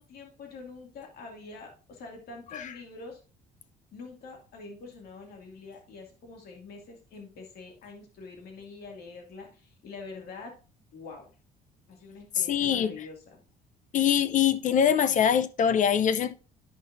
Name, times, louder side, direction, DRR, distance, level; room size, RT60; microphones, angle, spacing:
voice 1, 0.0-3.2 3.9-10.5 10.9-11.3 11.9-13.4, left 4 dB, 65° left, 2.4 m, -45 dB
voice 2, 12.5-12.9 13.9-16.3, left 8 dB, 50° left, 0.6 m, -23 dB
12.0 x 5.4 x 2.6 m
cardioid pair, 110°, 17 cm